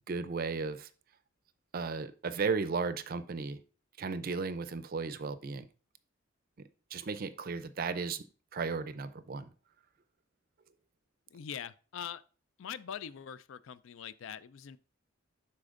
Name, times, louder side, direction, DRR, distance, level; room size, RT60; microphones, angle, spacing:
voice 1, 0.1-0.9 1.7-3.6 4.0-5.7 6.9-8.2 8.5-9.4, right 4 dB, 45° right, 0.5 m, -35 dB
voice 2, 11.3-12.2 12.6-14.8, left 8 dB, 70° left, 0.4 m, -43 dB
11.5 x 4.2 x 2.5 m
head